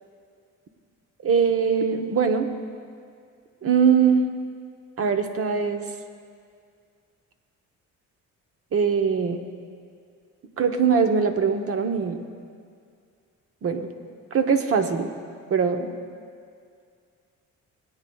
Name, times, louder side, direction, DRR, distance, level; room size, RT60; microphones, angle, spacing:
voice 1, 1.2-2.5 3.6-4.2 5.0-5.8 8.7-9.4 10.6-12.2 13.6-13.9 14.3-15.1 15.5-15.9, right 6 dB, 50° right, 6 dB, 0.9 m, -21 dB
20.0 x 8.9 x 2.3 m, 2.2 s
cardioid pair, 90°, 30 cm